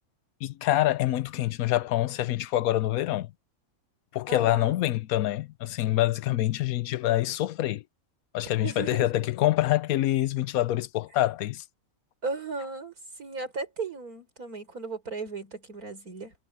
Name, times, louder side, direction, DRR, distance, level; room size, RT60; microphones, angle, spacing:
voice 1, 0.4-3.3 4.1-7.8 8.3-11.6, left 14 dB, 80° left, 1.1 m, -26 dB
voice 2, 4.3-4.8 8.6-9.1 12.2-12.9 13.2-16.3, right 4 dB, 90° right, 5.1 m, -36 dB
omnidirectional pair, 1.5 m